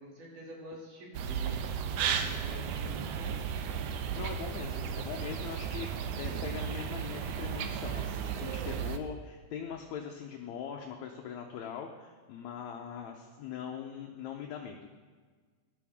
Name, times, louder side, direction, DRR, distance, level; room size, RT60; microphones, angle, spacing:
voice 1, 0.0-1.7 2.0-3.4, right 1 dB, 90° right, -2 dB, 4.1 m, -47 dB
sound 1, 1.1-9.0, right 7 dB, 75° right, 1.7 m, -34 dB
voice 2, 4.1-14.9, left 7 dB, 75° left, 2 dB, 2.0 m, -41 dB
15.0 x 11.0 x 3.6 m, 1.5 s
omnidirectional pair, 3.5 m